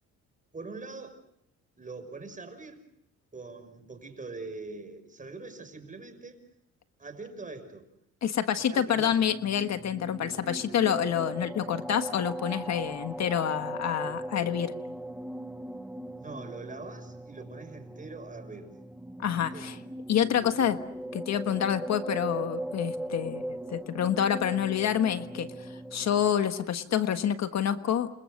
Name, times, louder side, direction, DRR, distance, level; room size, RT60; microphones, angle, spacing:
voice 1, 0.5-1.2 1.8-2.8 3.3-6.4 7.0-7.9 8.6-9.2 16.1-18.7 19.3-19.7, right 3 dB, 25° right, 8 dB, 6.0 m, -43 dB
voice 2, 8.2-14.7 19.2-19.7 20.1-20.8 21.1-28.1, left 9 dB, 60° left, 9 dB, 1.5 m, -28 dB
sound 1, 9.0-26.3, right 1 dB, 5° right, 1.0 m, -39 dB
29.5 x 27.0 x 6.6 m, 0.76 s
cardioid pair, 90°, 30 cm